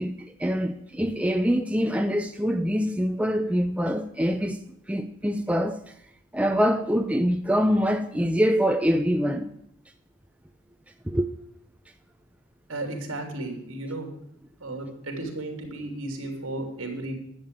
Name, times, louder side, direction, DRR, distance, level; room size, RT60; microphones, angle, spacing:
voice 1, 0.0-4.6 4.9-5.9 6.3-9.5 11.1-11.3, equal, 5° right, 0.4 m, -24 dB
voice 2, 12.7-14.1 14.6-17.1, right 2 dB, 65° right, 3.1 m, -34 dB
11.0 x 7.7 x 8.9 m
head